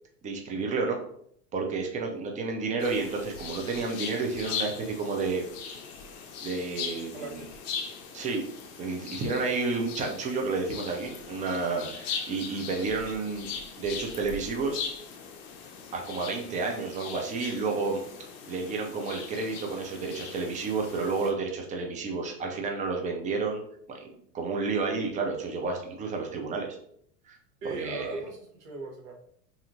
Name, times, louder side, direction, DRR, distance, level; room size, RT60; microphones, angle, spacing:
voice 1, 0.2-1.0 1.5-5.4 6.4-7.4 8.1-8.4 8.8-13.5 13.8-14.8 15.9-18.0 18.5-23.6 23.9-24.0 24.3-26.7 27.3-27.4 27.6-28.2, right 4 dB, 15° right, 2 dB, 0.4 m, -31 dB
sound 1, 2.8-21.3, left 6 dB, 40° left, 0.6 m, -40 dB
voice 2, 7.1-7.6 27.6-29.1, right 3 dB, 60° right, 0 dB, 1.0 m, -38 dB
2.7 x 2.6 x 2.6 m, 0.67 s
hypercardioid pair, 85°, 49 cm